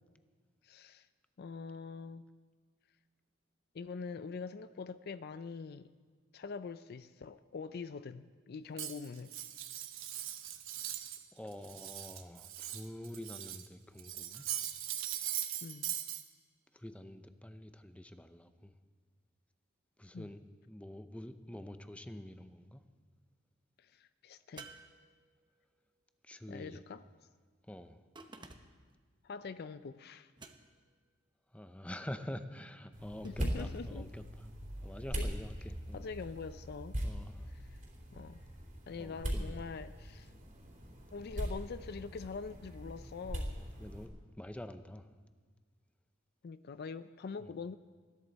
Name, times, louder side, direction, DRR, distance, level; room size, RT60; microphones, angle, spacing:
voice 1, 0.6-1.1 1.4-2.3 3.7-5.9 6.3-9.4 15.6-15.9 20.1-20.3 23.8-24.7 26.5-27.0 29.2-30.3 33.2-34.1 35.2-35.3 35.9-37.0 37.7-37.8 38.1-38.4 38.9-40.3 41.1-43.6 46.4-47.8, left 5 dB, 50° left, 13 dB, 0.4 m, -44 dB
Cutlery silverware, 8.8-11.2 11.5-13.7 14.0-16.2, right 11 dB, 80° right, 1.0 m, -40 dB
voice 2, 11.3-14.5 16.7-18.7 20.0-22.8 26.2-26.8 27.7-28.0 31.5-34.5 34.8-36.0 37.0-37.5 39.0-39.6 43.6-45.1 47.4-47.5, left 1 dB, 5° left, 9 dB, 0.6 m, -47 dB
sound 1, 24.6-25.7 28.2-28.9 30.4-31.0 33.2-33.9, right 3 dB, 25° right, 1.0 m, -53 dB
sound 2, 32.9-44.1, equal, 40° right, 3.1 m, -41 dB
20.5 x 14.0 x 4.1 m, 1.5 s
head